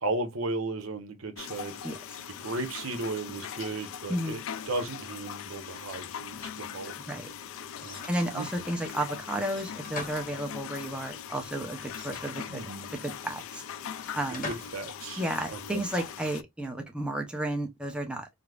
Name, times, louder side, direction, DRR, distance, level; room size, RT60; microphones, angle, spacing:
voice 1, 0.0-2.0 2.4-6.9 7.8-8.6 12.5-12.9 14.4-15.2 15.5-15.8, right 2 dB, 80° right, 0.9 m, -35 dB
sound 1, 1.4-16.4, left 8 dB, 65° left, 0.3 m, -41 dB
voice 2, 4.1-4.4 7.1-7.3 8.1-12.6 13.0-13.6 14.1-14.5 15.2-18.3, right 1 dB, 5° right, 0.6 m, -32 dB
sound 2, 7.8-8.6 9.5-10.8 11.9-12.9 14.0-14.9, left 3 dB, 40° left, 0.9 m, -42 dB
4.9 x 2.0 x 2.4 m
head